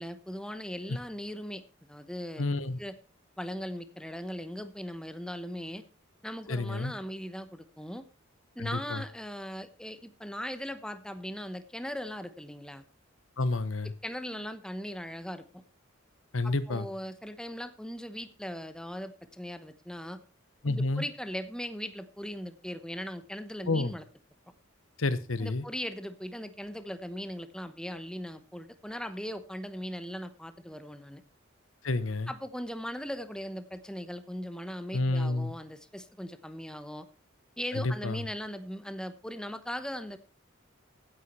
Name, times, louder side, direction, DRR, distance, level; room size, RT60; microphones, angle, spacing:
voice 1, 0.0-1.6 1.9-2.5 2.8-2.9 3.4-5.8 6.2-8.0 8.5-12.8 14.0-15.6 16.4-20.2 20.6-24.0 25.4-31.2 32.3-37.1 37.6-40.2, equal, 5° left, 11 dB, 0.9 m, -39 dB
voice 2, 2.4-2.8 6.5-6.9 8.6-9.0 13.4-13.9 16.3-16.9 20.6-21.0 23.7-23.9 25.0-25.6 31.8-32.3 34.9-35.5 37.7-38.2, left 2 dB, 85° left, 15 dB, 1.1 m, -29 dB
15.5 x 9.5 x 4.4 m, 0.34 s
head